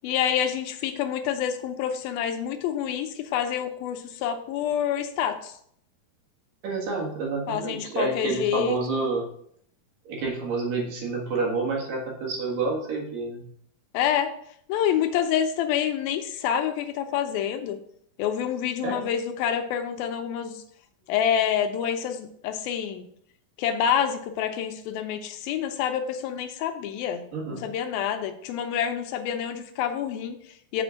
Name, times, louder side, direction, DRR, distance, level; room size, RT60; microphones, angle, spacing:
voice 1, 0.0-5.5 7.5-8.8 13.9-14.4 14.7-17.8 18.2-20.6 21.1-23.1 23.6-27.2 27.5-30.8, left 9 dB, 80° left, 6 dB, 2.4 m, -27 dB
voice 2, 6.6-9.2 10.1-13.4 18.8-19.1 27.3-27.6, right 3 dB, 65° right, -1 dB, 3.2 m, -29 dB
7.6 x 4.3 x 6.2 m, 0.66 s
omnidirectional pair, 4.3 m